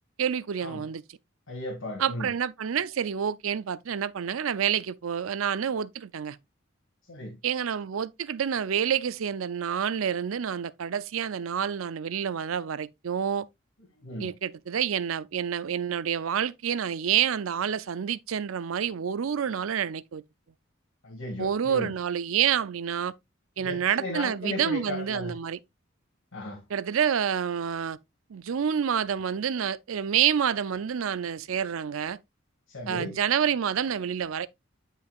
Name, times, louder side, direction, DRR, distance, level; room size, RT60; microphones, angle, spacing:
voice 1, 0.2-1.0 2.0-6.4 7.4-13.5 14.2-20.2 21.4-23.1 23.6-25.6 26.7-28.0 28.3-32.2 32.9-34.5, right 8 dB, 85° right, 0.5 m, -28 dB
voice 2, 1.5-2.3 7.1-7.4 14.0-14.3 21.0-21.9 23.6-25.4 26.3-26.6 32.7-33.2, left 1 dB, 80° left, 2.4 m, -36 dB
9.4 x 5.7 x 2.4 m
head